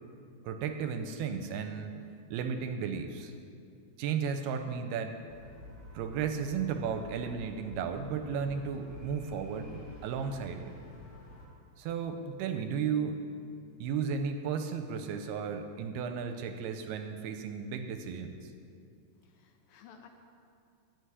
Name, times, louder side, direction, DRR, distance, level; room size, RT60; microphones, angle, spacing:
voice 1, 0.4-2.0 2.3-3.3 4.0-5.2 5.9-10.7 11.8-13.2 13.8-18.5, right 6 dB, 80° right, 7 dB, 2.4 m, -34 dB
sound 1, 5.3-11.5, left 1 dB, 10° right, 2.0 m, -49 dB
voice 2, 19.1-20.1, left 7 dB, 75° left, 4 dB, 2.1 m, -56 dB
11.5 x 7.6 x 9.6 m, 2.4 s
omnidirectional pair, 4.9 m